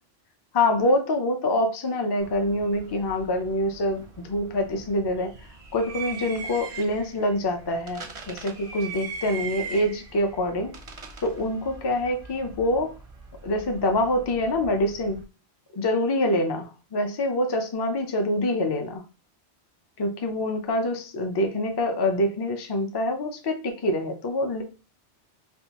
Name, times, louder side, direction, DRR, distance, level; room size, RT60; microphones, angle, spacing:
voice 1, 0.5-5.3 5.7-10.7 11.2-13.0 13.4-15.2 15.7-19.0 20.0-24.6, left 1 dB, 35° left, 5 dB, 0.4 m, -25 dB
sound 1, 2.2-15.2, right 5 dB, 45° right, 0.5 m, -41 dB
3.4 x 2.6 x 2.9 m, 0.33 s
omnidirectional pair, 1.2 m